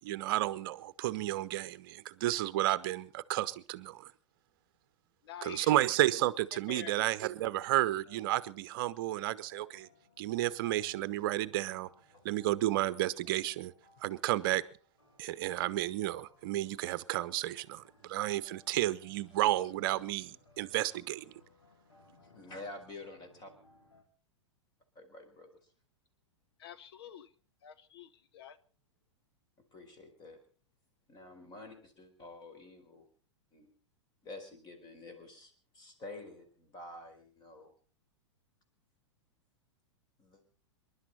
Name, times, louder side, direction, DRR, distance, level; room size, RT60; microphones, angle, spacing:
voice 1, 0.0-4.1 5.4-9.9 10.2-11.9 12.2-13.7 14.0-14.6 15.2-21.3, right 15 dB, 45° right, 16 dB, 0.9 m, -32 dB
voice 2, 5.2-6.0 6.7-6.9 26.6-27.3 27.6-28.6, left 10 dB, 55° left, 13 dB, 0.8 m, -48 dB
sound 1, 7.3-7.4 8.1-24.0, left 2 dB, 75° left, 4.3 m, -64 dB
voice 3, 22.2-23.5 24.9-25.5 29.6-30.4 31.1-33.1 33.5-33.7 34.2-37.7 40.2-40.4, left 2 dB, 25° left, 7 dB, 4.6 m, -49 dB
26.5 x 11.5 x 4.2 m, 0.41 s
figure-of-eight pair, 100°, 15 cm